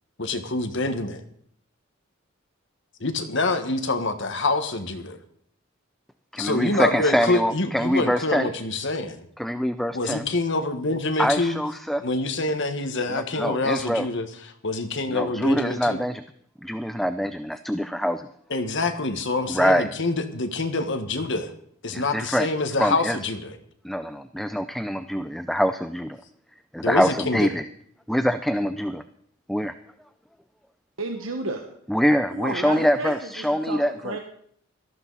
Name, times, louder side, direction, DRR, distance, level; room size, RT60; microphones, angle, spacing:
voice 1, 0.2-1.2 3.0-5.2 6.4-9.2 9.9-11.6 12.0-14.3 14.6-16.0 18.5-21.5 21.8-23.5 26.8-27.5, left 2 dB, 60° left, 7 dB, 1.6 m, -26 dB
voice 2, 6.3-8.5 9.4-10.2 11.2-12.0 13.1-14.1 15.1-16.2 16.6-18.3 19.5-19.9 21.9-22.5 22.8-23.2 23.8-26.2 26.7-27.6 28.1-29.0 29.5-29.7 31.9-34.2, equal, ahead, 10 dB, 0.5 m, -24 dB
voice 3, 31.0-31.6 32.3-33.1 33.7-34.2, right 3 dB, 75° right, 3 dB, 1.4 m, -31 dB
18.0 x 14.0 x 4.1 m, 0.66 s
head